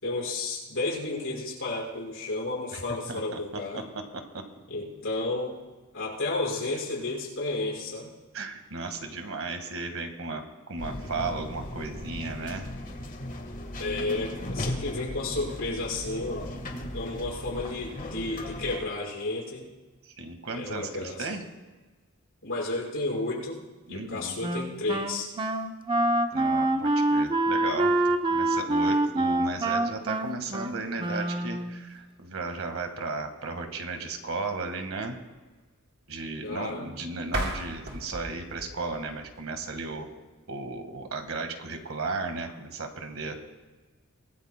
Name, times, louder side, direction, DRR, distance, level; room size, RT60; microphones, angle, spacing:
voice 1, 0.0-3.9 4.7-5.5 5.9-8.1 13.8-16.4 16.9-19.7 20.5-21.3 22.4-23.6 23.9-25.3 36.4-36.9 43.2-43.4, left 2 dB, 65° left, -4 dB, 5.3 m, -32 dB
voice 2, 3.1-4.4 8.3-10.4 10.7-12.7 20.0-21.4 23.9-24.4 26.3-28.0 28.3-35.2 36.1-40.1 40.5-43.4, right 3 dB, 75° right, 6 dB, 1.7 m, -35 dB
sound 1, 10.8-18.9, left 1 dB, 40° left, 1.4 m, -37 dB
Wind instrument woodwind instrument, 24.4-31.8, right 2 dB, 25° right, 0.7 m, -26 dB
sound 2, 37.2-40.1, right 1 dB, 55° right, 3.4 m, -36 dB
24.0 x 18.5 x 2.2 m, 1.3 s
head